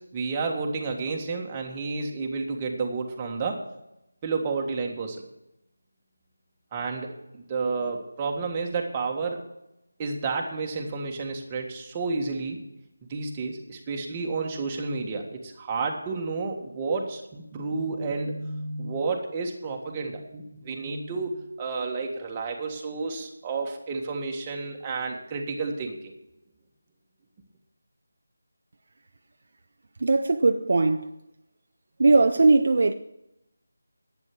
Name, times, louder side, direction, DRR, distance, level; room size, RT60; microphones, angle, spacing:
voice 1, 0.1-3.6 4.2-5.2 6.7-9.4 10.0-12.6 13.1-26.1, right 4 dB, 20° right, 1.6 m, -31 dB
voice 2, 30.0-31.1 32.0-32.9, right 3 dB, 50° right, 0.6 m, -19 dB
11.0 x 9.3 x 6.1 m
figure-of-eight pair, 165°, 0 cm